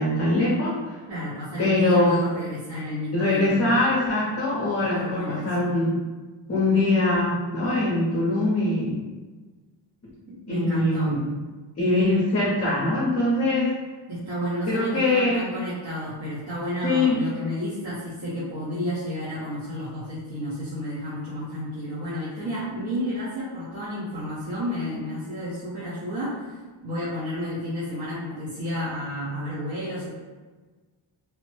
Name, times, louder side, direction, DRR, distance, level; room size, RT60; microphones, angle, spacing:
voice 1, 0.0-1.0 1.6-2.2 3.1-5.9 6.5-9.0 10.5-11.2 11.8-13.7 14.7-15.4 16.8-17.2, left 2 dB, 35° left, -6 dB, 0.5 m, -22 dB
voice 2, 1.1-3.6 5.0-5.7 10.3-11.1 14.1-30.1, equal, 60° right, -12 dB, 1.0 m, -31 dB
2.9 x 2.0 x 3.1 m, 1.3 s
wide cardioid pair, 160°, 47 cm